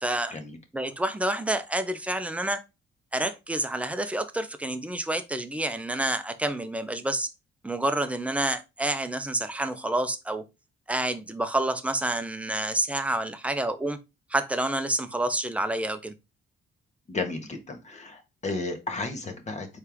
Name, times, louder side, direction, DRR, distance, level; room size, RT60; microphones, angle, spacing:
voice 1, 0.0-0.4 0.7-2.6 3.1-7.3 7.6-10.4 10.9-14.0 14.3-16.1, right 1 dB, 5° right, 0.7 m, -28 dB
voice 2, 17.1-19.7, left 3 dB, 35° left, 1.4 m, -33 dB
4.4 x 3.4 x 3.5 m
cardioid pair, 90°, 20 cm